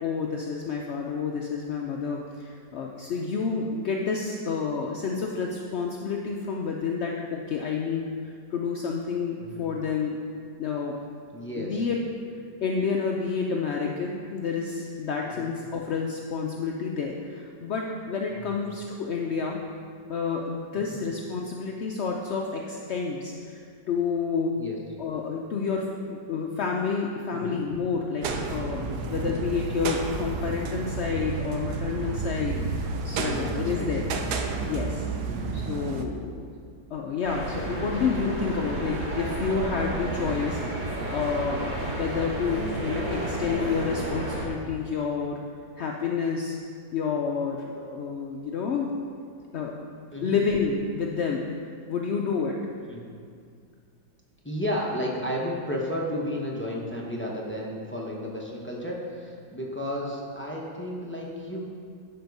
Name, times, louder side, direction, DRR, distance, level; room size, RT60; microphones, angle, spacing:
voice 1, 0.0-10.2 10.6-11.0 11.6-12.0 12.6-19.6 20.1-24.6 25.0-25.8 26.1-34.1 34.6-35.1 35.5-36.5 36.9-45.4 45.8-46.6 46.9-48.9 49.5-49.9 50.2-51.5 51.9-52.6, left 5 dB, 70° left, 0 dB, 0.6 m, -29 dB
voice 2, 9.4-9.7 11.3-11.9 15.2-15.5 18.3-18.6 20.8-21.0 24.6-24.8 27.3-27.6 28.9-29.4 32.4-32.7 33.1-34.0 35.2-35.7 41.9-42.0 50.1-50.4 52.8-53.0 54.4-61.6, equal, 10° left, -3 dB, 0.7 m, -33 dB
sound 1, 28.2-36.1, right 4 dB, 70° right, 1.2 m, -31 dB
sound 2, 37.2-44.5, right 2 dB, 35° right, 1.1 m, -31 dB
11.5 x 4.4 x 5.4 m, 2.2 s
omnidirectional pair, 1.8 m